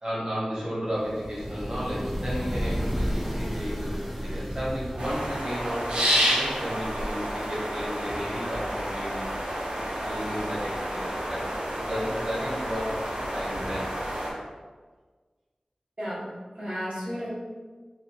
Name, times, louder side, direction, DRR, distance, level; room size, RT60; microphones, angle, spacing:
voice 1, 0.0-9.2 9.5-9.6 10.0-14.4, equal, 35° right, -7 dB, 0.9 m, -33 dB
sound 1, 1.0-5.7, equal, 5° right, 0.3 m, -32 dB
sound 2, 5.0-14.3, equal, 55° right, 0.6 m, -30 dB
voice 2, 16.0-17.3, equal, 70° right, -10 dB, 0.9 m, -33 dB
2.7 x 2.2 x 2.7 m, 1.4 s
wide cardioid pair, 55°, 2 cm